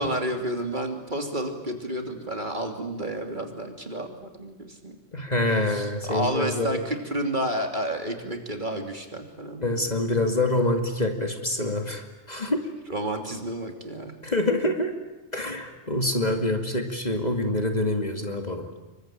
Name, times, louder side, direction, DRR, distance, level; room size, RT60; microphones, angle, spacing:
voice 1, 0.0-5.0 5.5-9.9 12.9-14.1, right 1 dB, 35° right, 4 dB, 3.1 m, -31 dB
voice 2, 5.1-6.8 9.6-12.6 14.2-14.9 15.3-18.6, left 1 dB, 30° left, 4 dB, 2.4 m, -26 dB
27.5 x 23.5 x 9.0 m, 1.1 s
omnidirectional pair, 1.3 m